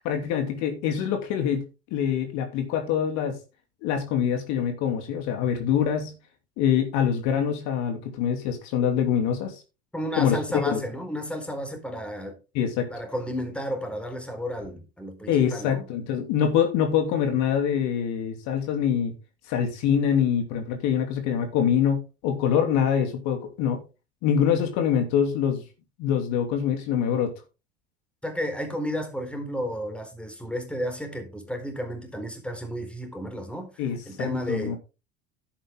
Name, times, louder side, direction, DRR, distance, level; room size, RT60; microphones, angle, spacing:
voice 1, 0.0-1.6 1.9-3.4 3.8-6.1 6.6-9.6 10.1-10.4 10.7-10.8 12.5-12.9 15.3-19.1 19.5-23.8 24.2-25.6 26.0-27.3 33.8-34.8, left 8 dB, 60° left, 3.0 m, -24 dB
voice 2, 9.9-12.4 12.9-15.8 28.2-34.8, equal, 5° left, 4.2 m, -32 dB
11.0 x 8.8 x 3.7 m
hypercardioid pair, 80°, 31 cm